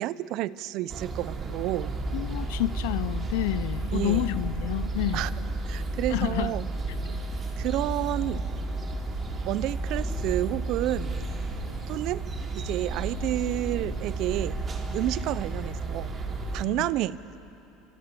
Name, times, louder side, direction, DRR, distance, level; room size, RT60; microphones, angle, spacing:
voice 1, 0.0-1.9 3.9-4.2 5.1-5.3 5.7-6.7 7.6-8.4 9.5-11.1 11.9-12.2 12.5-14.5 14.9-16.1 16.5-17.2, right 15 dB, 65° right, 18 dB, 0.7 m, -30 dB
sound 1, 0.9-16.6, right 2 dB, 35° right, 3.8 m, -32 dB
voice 2, 2.1-5.3 6.1-6.5 7.1-7.2 16.8-16.9, left 14 dB, 80° left, 18 dB, 0.6 m, -29 dB
28.5 x 25.5 x 7.0 m, 2.9 s
hypercardioid pair, 90°, 0 cm